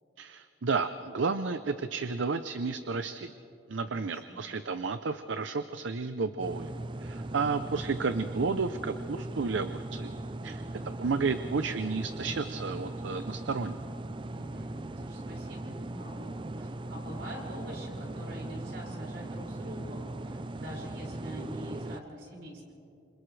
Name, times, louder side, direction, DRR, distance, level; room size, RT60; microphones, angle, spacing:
voice 1, 0.2-3.3 3.7-6.7 7.0-10.1 10.4-13.8, right 4 dB, 80° right, 10 dB, 0.6 m, -32 dB
voice 2, 3.8-4.4 10.4-10.8 14.3-22.6, equal, 65° right, -3 dB, 5.9 m, -45 dB
sound 1, 6.4-22.0, right 2 dB, 25° right, 0.4 m, -39 dB
29.5 x 27.0 x 3.3 m, 2.7 s
head